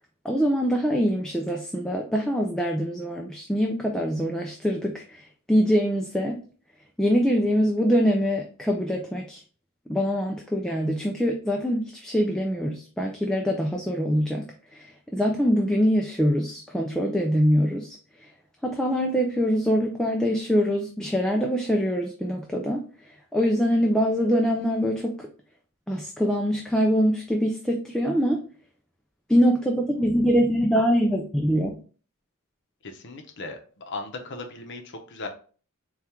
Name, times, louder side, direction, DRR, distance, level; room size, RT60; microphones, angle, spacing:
voice 1, 0.2-6.4 7.0-9.4 9.9-18.3 18.6-25.3 25.9-28.5 29.3-31.8, equal, 5° left, 1 dB, 0.3 m, -24 dB
voice 2, 32.8-35.3, left 3 dB, 55° left, 4 dB, 0.7 m, -37 dB
4.3 x 2.4 x 3.5 m, 0.41 s
head